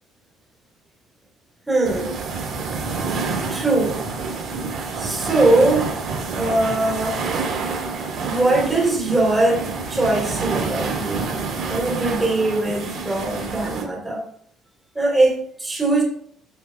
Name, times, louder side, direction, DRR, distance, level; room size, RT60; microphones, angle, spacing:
voice 1, 1.7-2.2 3.5-4.0 5.0-5.9 6.4-7.2 8.2-11.3 11.7-14.3 14.9-16.0, right 2 dB, 15° right, -2 dB, 3.6 m, -21 dB
sound 1, 1.8-13.8, right 4 dB, 60° right, 3.3 m, -28 dB
14.0 x 6.4 x 2.4 m, 0.62 s
cardioid pair, 120°, 0 cm